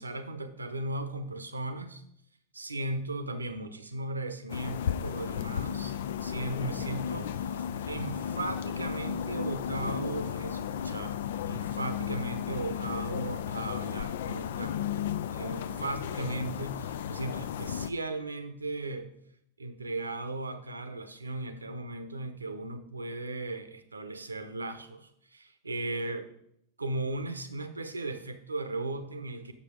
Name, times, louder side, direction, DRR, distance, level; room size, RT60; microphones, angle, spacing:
voice 1, 0.0-2.0 2.5-7.6 7.9-11.2 11.5-19.1 19.6-26.3 26.8-29.5, right 2 dB, 80° right, 10 dB, 0.8 m, -37 dB
sound 1, 4.5-17.9, left 9 dB, 60° left, 0.4 m, -34 dB
7.5 x 6.8 x 5.0 m, 0.73 s
figure-of-eight pair, 90°, 0 cm